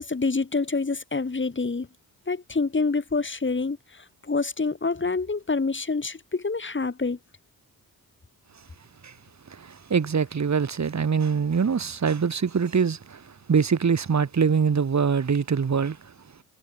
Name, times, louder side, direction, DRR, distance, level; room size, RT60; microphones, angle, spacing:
voice 1, 0.0-1.9 2.3-7.2, left 4 dB, 30° left, 7.3 m, -27 dB
voice 2, 9.5-13.2 13.5-16.0, right 6 dB, 50° right, 3.7 m, -23 dB
cardioid pair, 95°, 36 cm